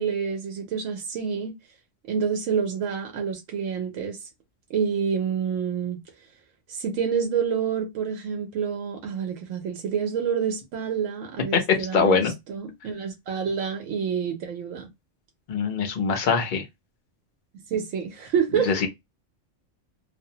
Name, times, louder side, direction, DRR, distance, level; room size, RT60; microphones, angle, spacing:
voice 1, 0.0-1.5 2.1-4.2 4.7-6.0 6.7-14.9 17.7-18.9, right 7 dB, 90° right, 1.0 m, -28 dB
voice 2, 11.9-12.3 15.5-16.6 18.7-18.9, left 5 dB, 50° left, 0.6 m, -22 dB
2.5 x 2.0 x 2.7 m
omnidirectional pair, 1.3 m